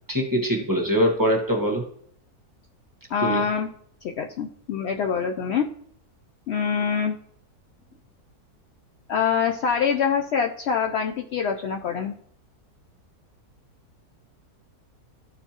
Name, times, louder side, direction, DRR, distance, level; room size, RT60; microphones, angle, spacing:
voice 1, 0.1-1.8 3.2-3.5, equal, 15° right, 0 dB, 1.1 m, -23 dB
voice 2, 3.1-3.7 4.0-5.7 6.5-7.2 9.1-12.1, left 6 dB, 85° left, 3 dB, 0.6 m, -25 dB
13.0 x 4.5 x 2.9 m, 0.65 s
omnidirectional pair, 1.7 m